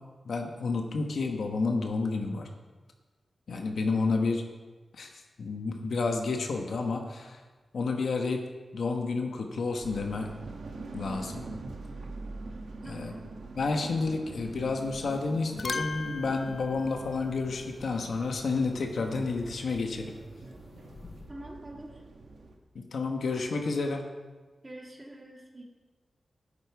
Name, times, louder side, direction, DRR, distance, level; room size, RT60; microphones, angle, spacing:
voice 1, 0.2-2.5 3.5-4.4 5.0-5.1 5.4-7.4 7.7-8.4 8.7-10.3 10.9-11.4 12.8-13.1 13.5-20.1 22.7-24.1, left 3 dB, 80° left, 3 dB, 1.2 m, -30 dB
sound 1, 9.8-22.6, right 3 dB, 90° right, 1.2 m, -44 dB
voice 2, 12.8-13.3 21.3-21.9 24.6-25.6, right 1 dB, 25° right, 0 dB, 1.9 m, -45 dB
sound 2, 14.8-15.1 15.4-17.9 20.4-21.3, left 4 dB, 50° left, 0.4 m, -39 dB
11.0 x 8.9 x 4.7 m, 1.3 s
wide cardioid pair, 100°, 0 cm